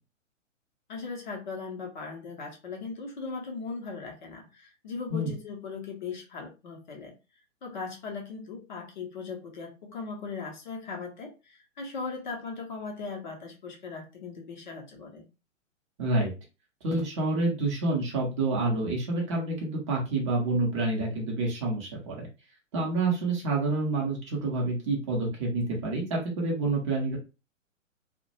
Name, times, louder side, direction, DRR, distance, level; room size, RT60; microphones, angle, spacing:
voice 1, 0.9-7.2 7.6-15.3, left 4 dB, 35° left, 1 dB, 0.6 m, -38 dB
voice 2, 16.0-16.3 16.8-22.3 22.7-27.2, right 2 dB, 25° right, -2 dB, 0.6 m, -28 dB
2.2 x 2.0 x 2.7 m, 0.29 s
figure-of-eight pair, 120°, 39 cm